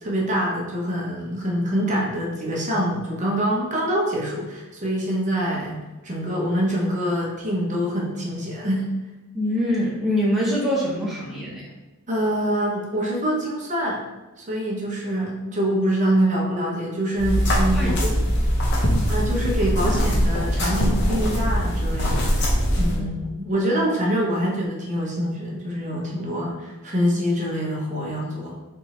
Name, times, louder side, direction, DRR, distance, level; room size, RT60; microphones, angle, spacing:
voice 1, 0.0-8.9 12.1-14.1 14.4-18.2 19.1-28.5, equal, 35° right, -3 dB, 0.9 m, -25 dB
voice 2, 9.3-11.7 17.7-17.9 22.8-23.0 23.6-23.7, equal, ahead, -7 dB, 0.7 m, -24 dB
sound 1, 17.1-23.0, equal, 55° left, 1.0 m, -21 dB
4.1 x 3.5 x 3.0 m, 1.1 s
head